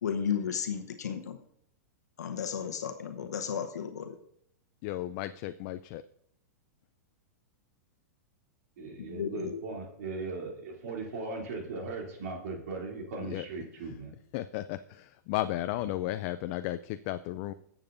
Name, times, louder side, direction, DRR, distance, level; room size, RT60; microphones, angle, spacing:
voice 1, 0.0-1.4 2.2-4.2 9.0-9.6, left 7 dB, 85° left, 5 dB, 0.9 m, -34 dB
voice 2, 4.8-6.0 13.3-13.5 14.3-17.5, left 14 dB, 45° left, 12 dB, 0.4 m, -34 dB
voice 3, 8.8-14.1, right 3 dB, 70° right, -1 dB, 2.9 m, -38 dB
21.5 x 7.2 x 2.6 m, 0.72 s
hypercardioid pair, 125°, 9 cm